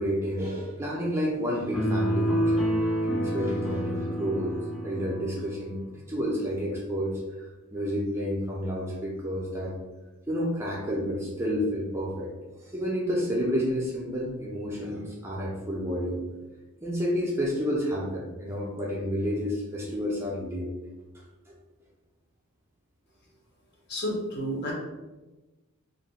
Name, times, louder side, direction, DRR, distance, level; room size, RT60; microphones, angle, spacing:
voice 1, 0.0-2.7 3.1-4.5 4.8-7.4 7.7-9.7 10.3-12.3 12.6-16.2 16.8-20.7 21.1-21.2, equal, 10° right, -4 dB, 0.4 m, -30 dB
sound 1, 1.7-5.3, equal, 75° left, 1.0 m, -27 dB
voice 2, 23.9-24.7, equal, 50° left, -2 dB, 0.8 m, -30 dB
2.4 x 2.2 x 3.9 m, 1.1 s
head